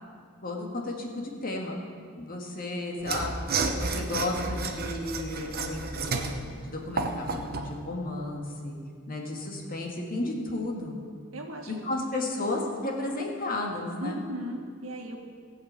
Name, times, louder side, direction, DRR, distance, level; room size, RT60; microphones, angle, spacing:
voice 1, 0.4-1.8 2.2-3.3 3.7-6.4 6.7-8.8 9.1-11.0 11.7-14.2, left 2 dB, 45° left, 0 dB, 1.9 m, -33 dB
Mechanisms / Sawing, 3.0-7.7, right 4 dB, 45° right, 0.9 m, -31 dB
voice 2, 11.3-11.7 12.1-12.5 14.0-15.2, right 1 dB, 75° right, 2 dB, 1.6 m, -37 dB
16.5 x 5.9 x 8.2 m, 2.1 s
head